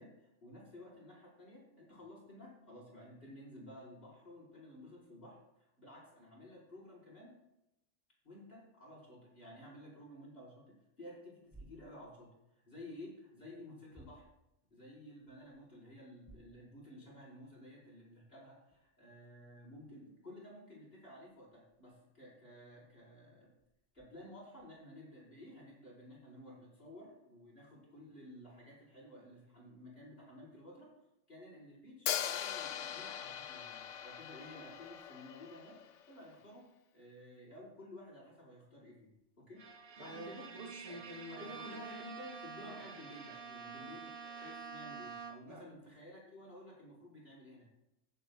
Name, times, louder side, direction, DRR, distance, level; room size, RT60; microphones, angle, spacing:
voice 1, 0.0-5.4 5.8-7.3 8.2-12.4 12.7-14.2 14.7-23.5 23.9-30.9 31.3-35.8 36.1-36.7 36.9-39.1 39.4-40.4 40.9-41.0 41.3-47.6, left 1 dB, 45° left, -5 dB, 4.8 m, -53 dB
sound 1, 11.4-12.5 13.1-14.6 15.1-16.7 17.1-17.2 17.8-17.9 18.6-24.8, right 1 dB, 5° right, 3.4 m, -63 dB
Hi-hat, 32.1-36.0, left 9 dB, 70° left, 0.9 m, -40 dB
Bowed string instrument, 39.6-45.7, right 5 dB, 80° right, 1.4 m, -48 dB
voice 2, 40.0-41.7 42.6-42.8 43.7-43.9 45.5-45.9, equal, 60° right, -1 dB, 2.8 m, -50 dB
20.5 x 8.0 x 2.3 m, 0.86 s
omnidirectional pair, 1.4 m